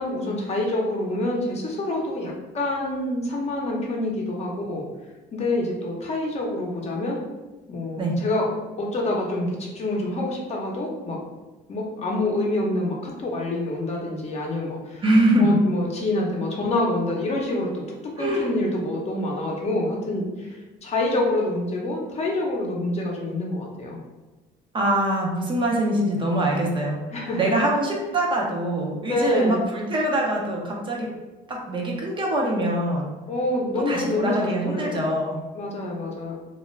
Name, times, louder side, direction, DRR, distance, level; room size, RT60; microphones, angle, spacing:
voice 1, 0.0-4.8 5.3-7.2 7.7-8.5 8.8-9.5 9.7-11.2 11.7-15.0 15.4-17.7 18.2-24.0 27.1-27.4 29.1-29.6 33.3-35.0 35.5-36.3, left 2 dB, 40° left, -1 dB, 0.7 m, -26 dB
voice 2, 15.0-15.6 18.2-18.5 24.7-27.0 27.4-31.1 31.5-33.1 33.9-35.4, right 1 dB, 30° right, -1 dB, 0.5 m, -23 dB
2.4 x 2.1 x 3.1 m, 1.2 s
cardioid pair, 110°, 17 cm